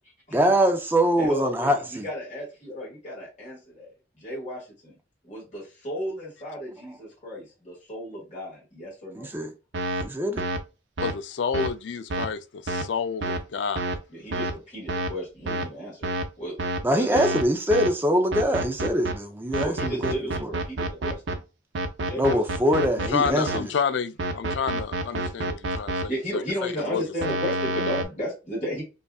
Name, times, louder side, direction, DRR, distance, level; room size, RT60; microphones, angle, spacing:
voice 1, 0.3-2.0 9.1-9.5 10.0-10.4 16.8-20.1 22.2-23.6, equal, 10° right, 0.5 m, -23 dB
voice 2, 1.2-5.0 5.2-9.3 14.1-16.1 16.4-16.6 16.8-17.2 19.6-21.4 22.0-22.6 26.1-28.8, equal, 40° left, 1.9 m, -34 dB
sound 1, 9.7-10.0 10.4-10.6 11.0-11.1 11.5-11.7 12.1-12.3 12.7-12.8 13.2-13.4 13.8-14.0 14.3-14.5 14.9-15.1 15.5-15.6 16.0-16.2 16.6-16.8 17.2-17.4 17.7-17.9 18.3-19.1 19.5-21.3 21.7-23.6 24.2-26.0 27.2-28.0, right 2 dB, 85° right, 0.7 m, -28 dB
voice 3, 11.0-13.9 23.1-27.0, left 6 dB, 70° left, 0.4 m, -29 dB
5.1 x 2.4 x 2.3 m
head